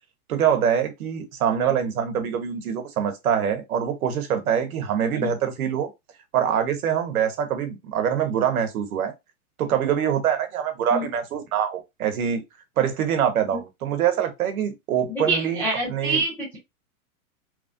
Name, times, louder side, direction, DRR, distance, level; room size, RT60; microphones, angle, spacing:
voice 1, 0.3-5.9 6.3-9.1 9.6-12.4 12.8-16.2, right 8 dB, 75° right, 0.9 m, -24 dB
voice 2, 15.1-16.6, right 2 dB, 5° left, 0.3 m, -26 dB
3.1 x 2.4 x 2.5 m
hypercardioid pair, 125°, 44 cm